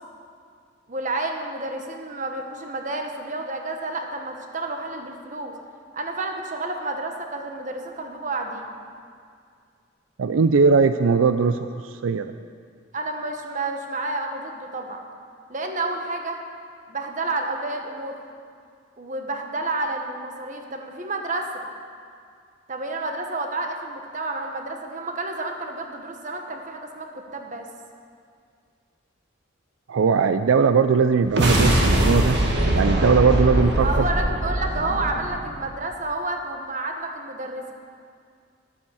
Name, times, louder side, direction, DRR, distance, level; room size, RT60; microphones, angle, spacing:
voice 1, 0.9-5.5 5.9-8.7 12.9-15.0 15.5-16.4 16.9-18.2 19.0-21.6 22.7-27.7 33.8-37.7, right 2 dB, 40° right, 3 dB, 1.2 m, -30 dB
voice 2, 10.2-12.3 29.9-32.4 32.7-34.1, right 5 dB, 85° right, 10 dB, 0.4 m, -19 dB
sound 1, 31.2-35.8, right 1 dB, 60° right, 1.8 m, -22 dB
12.0 x 9.4 x 7.1 m, 2.2 s
head